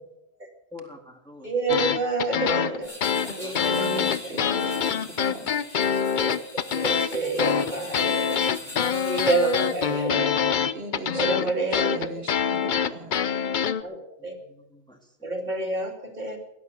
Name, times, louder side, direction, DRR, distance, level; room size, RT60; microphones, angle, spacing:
voice 1, 0.7-1.5 3.0-5.5 7.7-9.3 13.2-15.2 15.4-15.5, left 2 dB, 5° left, 2 dB, 2.1 m, -47 dB
voice 2, 1.4-3.0 3.4-3.9 4.2-4.7 6.1-8.4 9.0-10.6 11.1-11.9 13.3-13.4 13.8-14.3 15.2-16.4, right 3 dB, 45° right, 2 dB, 2.9 m, -28 dB
sound 1, 1.7-13.8, left 7 dB, 55° left, 0.8 m, -25 dB
sound 2, 2.8-10.1, left 1 dB, 85° left, 6.5 m, -42 dB
voice 3, 3.2-5.5 10.7-13.2, right 3 dB, 75° right, 4 dB, 2.1 m, -39 dB
18.5 x 11.0 x 6.8 m, 0.82 s
omnidirectional pair, 1.0 m